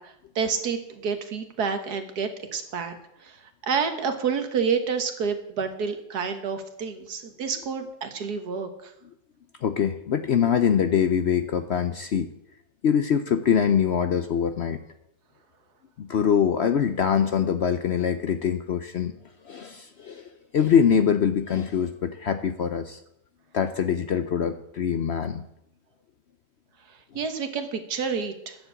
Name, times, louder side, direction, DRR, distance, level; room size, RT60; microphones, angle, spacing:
voice 1, 0.0-3.0 3.2-8.9 27.2-28.6, right 6 dB, 75° right, 7 dB, 1.8 m, -29 dB
voice 2, 9.6-12.3 12.8-14.8 16.0-19.1 19.5-20.3 20.5-23.0 23.5-25.4, left 8 dB, 60° left, 9 dB, 0.7 m, -23 dB
10.5 x 7.2 x 8.1 m, 0.80 s
omnidirectional pair, 1.7 m